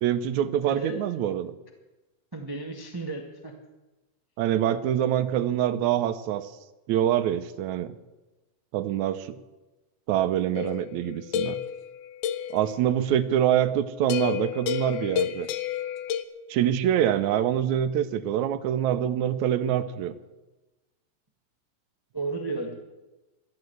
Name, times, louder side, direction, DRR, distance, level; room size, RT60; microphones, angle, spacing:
voice 1, 0.0-1.5 4.4-6.5 6.9-7.9 8.7-9.4 10.1-11.6 12.5-15.5 16.5-20.1, right 10 dB, 75° right, 11 dB, 2.0 m, -25 dB
voice 2, 0.7-1.0 2.3-3.5 22.1-22.7, right 3 dB, 20° right, 2 dB, 0.5 m, -33 dB
sound 1, 10.5-12.6 14.1-16.2, left 10 dB, 85° left, 2.2 m, -30 dB
13.5 x 12.0 x 7.9 m, 1.1 s
omnidirectional pair, 3.5 m